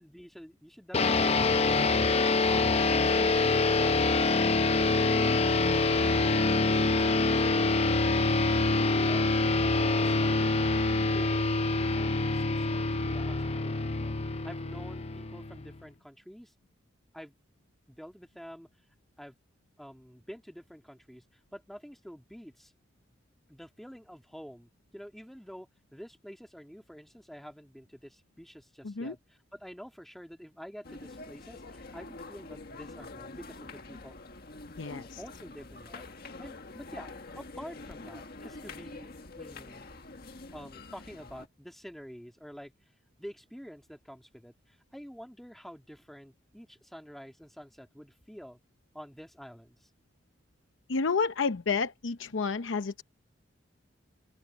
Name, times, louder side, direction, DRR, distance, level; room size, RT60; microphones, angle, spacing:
voice 1, 0.0-2.7 9.0-9.3 9.6-10.5 11.7-16.5 17.1-17.3 17.9-18.7 19.2-19.4 19.8-22.7 23.5-34.2 34.9-39.1 39.4-39.9 40.5-42.7 43.2-48.6 48.9-49.9, equal, ahead, 2.1 m, -48 dB
sound 1, 0.9-15.7, left 3 dB, 35° left, 0.6 m, -26 dB
voice 2, 28.8-29.1 34.8-35.0 50.9-53.0, left 4 dB, 85° left, 0.7 m, -30 dB
sound 2, 30.8-41.5, left 3 dB, 55° left, 1.6 m, -46 dB
open air
head